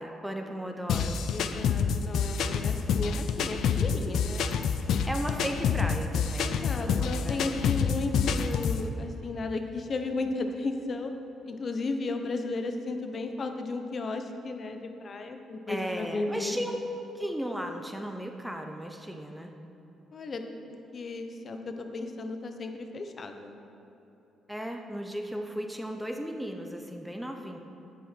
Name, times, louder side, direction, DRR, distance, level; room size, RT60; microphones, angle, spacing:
voice 1, 0.0-1.3 5.0-7.6 7.8-7.9 15.7-16.8 17.1-19.5 24.5-27.6, equal, 5° right, 3 dB, 0.8 m, -36 dB
sound 1, 0.9-8.9, left 6 dB, 75° left, 0.5 m, -27 dB
voice 2, 1.3-4.5 6.4-11.1 11.5-16.6 20.1-20.4 20.7-23.6, left 3 dB, 45° left, 6 dB, 0.9 m, -34 dB
10.0 x 9.1 x 4.5 m, 3.0 s
cardioid pair, 90°, 0 cm